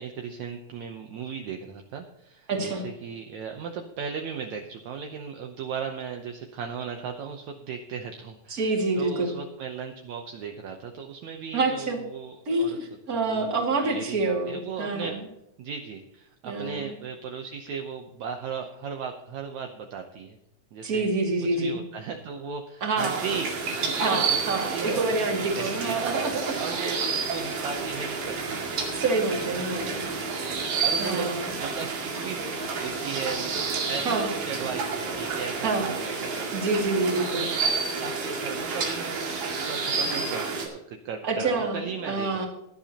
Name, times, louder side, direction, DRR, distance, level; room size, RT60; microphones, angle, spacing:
voice 1, 0.0-12.8 13.1-13.5 13.8-15.1 15.6-20.4 20.7-21.1 21.5-25.1 25.4-29.0 29.3-30.4 30.8-32.4 32.8-36.9 37.4-42.5, right 6 dB, 70° right, 4 dB, 2.0 m, -37 dB
voice 2, 2.5-2.8 8.5-9.3 11.5-12.0 12.5-15.2 16.4-17.0 20.8-21.8 22.8-23.3 24.0-27.0 28.9-30.1 31.0-31.5 34.0-34.3 35.6-36.0 36.5-37.5 41.2-42.5, right 3 dB, 30° right, 1 dB, 2.4 m, -27 dB
sound 1, 23.0-40.7, right 4 dB, 90° right, 4.0 m, -30 dB
17.5 x 11.5 x 2.9 m, 0.84 s
omnidirectional pair, 3.8 m